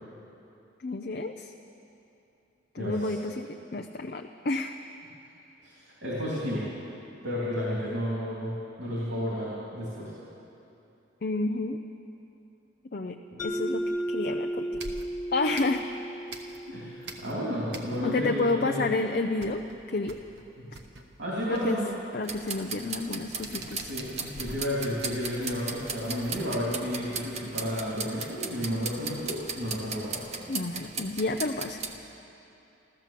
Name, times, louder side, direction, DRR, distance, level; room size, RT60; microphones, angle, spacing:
voice 1, 0.8-1.5 2.7-4.8 11.2-11.8 12.9-13.8 14.1-14.7 15.3-15.9 18.0-19.6 19.9-20.2 21.5-21.8 22.1-23.9 30.5-31.8, left 2 dB, 50° left, 4 dB, 0.5 m, -30 dB
voice 2, 2.8-3.1 5.6-6.6 7.2-10.1 13.3-13.4 16.7-18.7 21.2-21.9 22.7-22.8 23.5-23.6 23.9-30.2, equal, 80° right, -6 dB, 3.2 m, -32 dB
Mallet percussion, 13.4-18.0, equal, 20° left, 1.4 m, -34 dB
sound 1, 13.8-14.3 14.7-16.8 17.0-18.3 18.6-18.7 19.0-26.5, right 2 dB, 60° right, 1.1 m, -46 dB
sound 2, 22.3-32.0, right 5 dB, 35° right, 0.9 m, -37 dB
14.5 x 13.5 x 7.5 m, 2.8 s
head